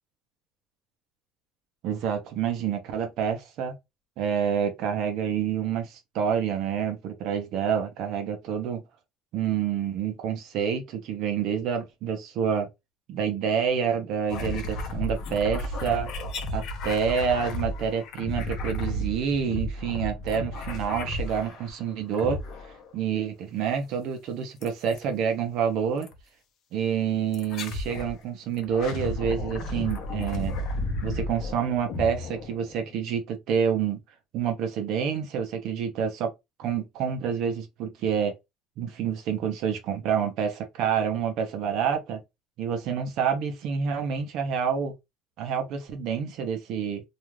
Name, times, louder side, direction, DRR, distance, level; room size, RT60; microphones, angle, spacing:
voice 1, 1.8-3.8 4.2-8.8 9.3-12.7 13.1-16.1 16.5-22.4 22.9-26.1 26.7-30.5 31.0-34.0 34.3-36.3 36.6-38.3 38.8-42.2 42.6-44.9 45.4-47.0, right 7 dB, 50° right, 0.6 m, -28 dB
sound 1, 14.3-21.7 22.1-22.9 24.6-25.0 26.0-26.2 27.3-28.1 28.6-32.9, left 1 dB, 45° left, 0.7 m, -33 dB
2.4 x 2.3 x 3.0 m
cardioid pair, 170°, 0 cm